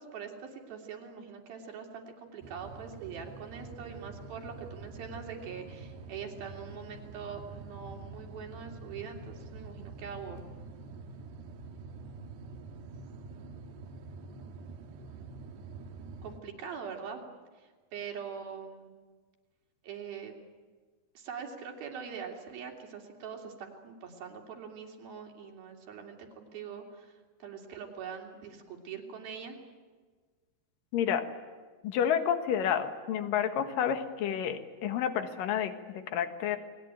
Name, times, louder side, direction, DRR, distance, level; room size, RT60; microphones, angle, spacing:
voice 1, 0.0-10.4 16.2-17.2 17.6-18.9 19.8-20.3 21.1-29.6, right 6 dB, 65° right, 2 dB, 4.7 m, -43 dB
sound 1, 2.4-16.4, right 3 dB, 80° right, 3.6 m, -46 dB
voice 2, 30.9-31.3 31.8-36.6, left 9 dB, 65° left, 7 dB, 3.0 m, -30 dB
29.5 x 21.0 x 9.1 m, 1.4 s
omnidirectional pair, 4.7 m